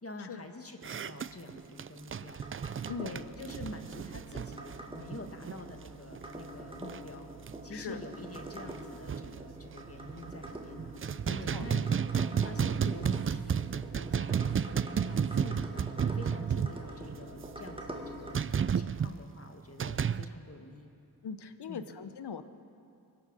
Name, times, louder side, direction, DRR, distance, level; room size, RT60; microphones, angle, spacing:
voice 1, 0.0-2.4 3.0-7.3 7.6-15.9 16.1-18.4 18.8-20.9 21.7-21.9, left 2 dB, 35° left, 5 dB, 1.6 m, -47 dB
sound 1, 0.8-5.9 6.2-6.3 6.7-7.1 7.5-7.6 8.0-8.1 8.3-9.4 10.0-10.5 10.8-17.2 18.3-19.1 19.8-20.3, right 7 dB, 35° right, 0.4 m, -32 dB
sound 2, 1.6-18.4, right 1 dB, 15° right, 1.9 m, -46 dB
voice 2, 2.9-3.2 7.7-8.0 11.2-11.7 21.2-22.4, left 6 dB, 75° left, 11 dB, 0.9 m, -40 dB
sound 3, 3.3-19.2, right 9 dB, 70° right, 0.8 m, -54 dB
23.5 x 8.6 x 6.3 m, 2.6 s
cardioid pair, 50°, 40 cm